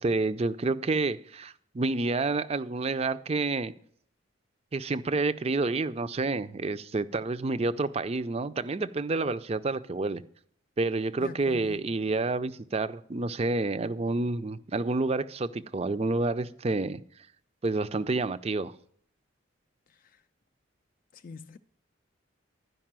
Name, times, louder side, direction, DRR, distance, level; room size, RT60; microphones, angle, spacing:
voice 1, 0.0-3.7 4.7-10.2 10.8-17.0 17.6-18.7, right 3 dB, 30° right, 0.4 m, -29 dB
voice 2, 11.2-11.8 21.2-21.6, left 4 dB, 45° left, 0.3 m, -43 dB
12.5 x 5.3 x 7.4 m
head